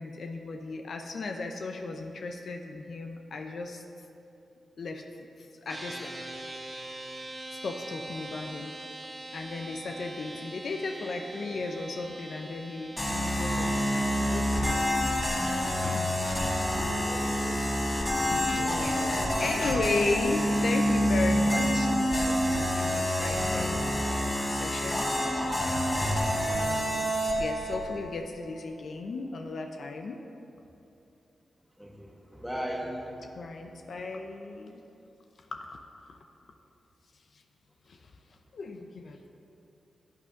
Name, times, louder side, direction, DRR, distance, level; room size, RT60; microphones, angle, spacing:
voice 1, 0.0-3.8 4.8-5.0 5.4-6.1 7.5-8.7 9.3-16.8 17.7-25.1 26.5-30.3 33.3-34.8 35.5-35.8 36.0-36.2 37.3-37.4 37.9-38.1 38.5-39.2, left 3 dB, 65° left, 4 dB, 0.7 m, -36 dB
sound 1, 5.7-16.5, right 1 dB, 30° right, 1.4 m, -43 dB
sound 2, 13.0-27.8, equal, 25° left, 2.3 m, -27 dB
voice 2, 17.1-17.6 18.6-19.1 27.2-27.3 31.8-32.1 32.4-33.2, equal, ahead, -2 dB, 1.8 m, -37 dB
13.5 x 8.5 x 3.7 m, 2.8 s
cardioid pair, 75°, 0 cm